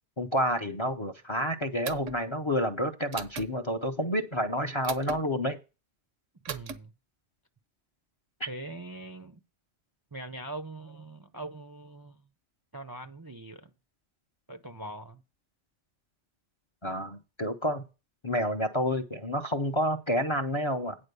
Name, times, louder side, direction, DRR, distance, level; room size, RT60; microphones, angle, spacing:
voice 1, 0.2-5.6 8.4-8.5 16.8-17.8 18.2-21.0, equal, 30° left, 0.6 m, -29 dB
sound 1, 1.8-2.2 3.1-3.5 4.8-5.2 6.5-6.8, right 7 dB, 85° right, 1.3 m, -37 dB
voice 2, 6.5-6.9 8.5-9.4 10.1-12.3 12.7-13.7 14.5-15.2, right 2 dB, 25° right, 0.5 m, -42 dB
9.7 x 4.2 x 6.8 m
omnidirectional pair, 1.3 m